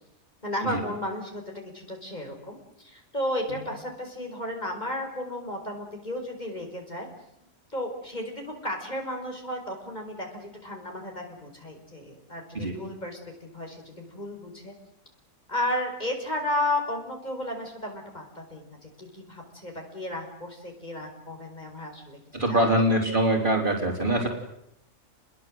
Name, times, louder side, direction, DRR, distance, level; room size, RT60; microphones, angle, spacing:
voice 1, 0.4-7.1 7.7-14.7 15.5-22.2 22.5-22.7, left 1 dB, 25° left, 2 dB, 5.2 m, -33 dB
voice 2, 22.3-24.3, right 1 dB, 30° right, 1 dB, 4.0 m, -23 dB
30.0 x 21.5 x 7.8 m, 0.78 s
omnidirectional pair, 1.7 m